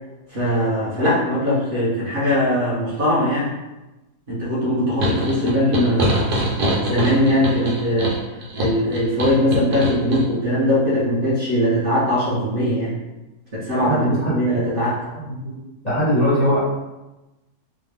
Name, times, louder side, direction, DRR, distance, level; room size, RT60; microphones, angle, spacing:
voice 1, 0.3-3.5 4.3-8.1 8.6-12.9 13.5-15.0, equal, 40° right, -9 dB, 0.9 m, -20 dB
sound 1, 5.0-10.2, equal, 75° right, 1.3 m, -24 dB
voice 2, 13.9-14.3 15.3-15.5 15.8-16.6, equal, 35° left, -10 dB, 0.7 m, -20 dB
3.3 x 2.2 x 3.4 m, 1.0 s
omnidirectional pair, 1.7 m